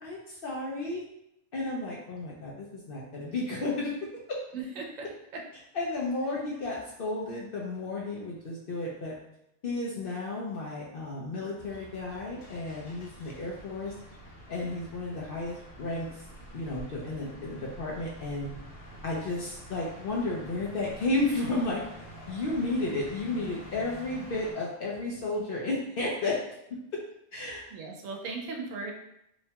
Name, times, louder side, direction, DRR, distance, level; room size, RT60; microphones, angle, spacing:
voice 1, 0.0-1.0 1.5-3.9 4.3-4.4 5.7-9.1 9.6-13.9 14.5-16.1 16.5-18.5 19.0-21.8 22.3-26.4 27.3-27.7, left 2 dB, 60° left, -3 dB, 0.6 m, -32 dB
voice 2, 4.5-5.1 5.3-5.4 27.7-28.9, right 4 dB, 85° right, 1 dB, 1.0 m, -37 dB
sound 1, 11.5-24.5, right 1 dB, 80° left, 1.1 m, -47 dB
2.9 x 2.2 x 2.8 m, 0.79 s
omnidirectional pair, 1.3 m